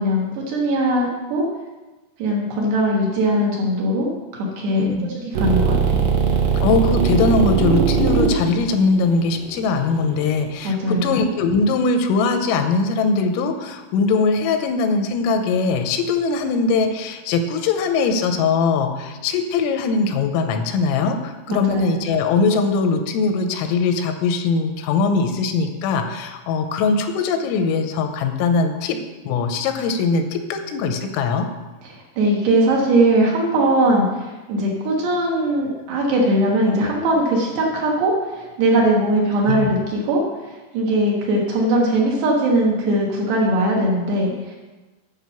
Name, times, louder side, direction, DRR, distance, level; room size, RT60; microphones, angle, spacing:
voice 1, 0.0-1.4 2.2-5.7 10.6-11.2 21.5-21.9 31.8-44.6, right 1 dB, 65° right, -3 dB, 3.0 m, -20 dB
voice 2, 4.8-5.1 6.6-29.0 29.3-31.5 39.5-39.7, left 4 dB, 85° left, 6 dB, 3.3 m, -21 dB
sound 1, 5.3-10.5, right 5 dB, 80° right, 3.8 m, -20 dB
9.3 x 5.7 x 6.9 m, 1.2 s
omnidirectional pair, 5.9 m